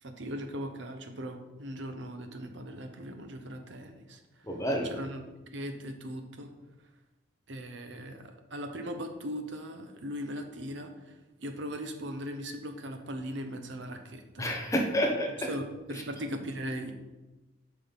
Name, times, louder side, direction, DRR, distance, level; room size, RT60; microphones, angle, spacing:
voice 1, 0.0-4.2 4.9-5.2 5.5-6.5 7.5-14.4 15.5-16.9, equal, 65° right, 6 dB, 0.8 m, -39 dB
voice 2, 4.4-5.0 14.4-15.5 15.9-16.0, equal, 15° left, 1 dB, 0.8 m, -29 dB
7.7 x 5.3 x 4.1 m, 1.1 s
head